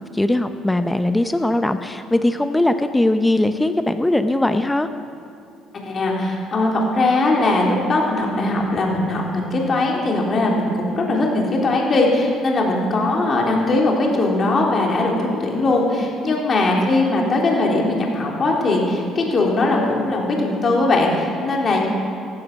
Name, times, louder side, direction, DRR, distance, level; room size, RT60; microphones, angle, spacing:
voice 1, 0.1-4.9 16.3-16.4, left 1 dB, 10° left, 9 dB, 0.9 m, -20 dB
voice 2, 5.8-21.9, left 2 dB, 40° left, -1 dB, 3.6 m, -20 dB
14.5 x 13.0 x 6.1 m, 2.6 s
hypercardioid pair, 55°, 0 cm